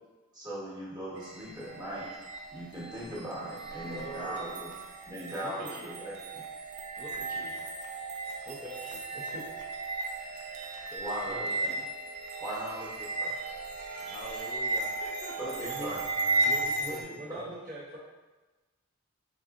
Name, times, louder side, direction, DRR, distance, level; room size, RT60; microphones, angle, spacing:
voice 1, 0.3-2.1 2.5-4.7 5.1-6.4 11.0-11.7 12.4-13.3 15.4-16.0 17.3-17.5, equal, 20° right, -8 dB, 1.2 m, -39 dB
sound 1, 1.2-17.0, right 2 dB, 90° right, 0.5 m, -35 dB
voice 2, 3.8-4.6 5.4-6.0 6.9-7.6 8.4-9.4 10.3-10.4 10.9-11.5 15.6-16.0 16.4-18.0, right 1 dB, 40° right, -4 dB, 0.7 m, -43 dB
voice 3, 11.0-11.8 14.0-15.6, left 1 dB, 30° left, -1 dB, 0.4 m, -45 dB
4.0 x 3.6 x 2.5 m, 1.2 s
head